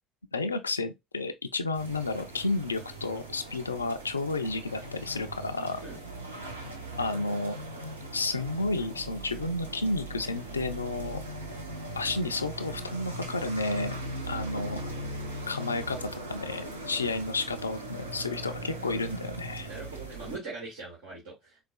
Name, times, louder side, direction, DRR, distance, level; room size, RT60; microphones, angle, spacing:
voice 1, 0.3-5.8 7.0-7.6 8.1-11.2 12.0-13.9 14.3-14.8 15.5-19.7, left 3 dB, 85° left, 0.3 m, -31 dB
sound 1, 1.7-20.4, right 1 dB, 85° right, 0.6 m, -40 dB
voice 2, 19.7-21.6, right 3 dB, 65° right, 1.6 m, -41 dB
4.5 x 2.3 x 2.3 m
figure-of-eight pair, 60°, 0 cm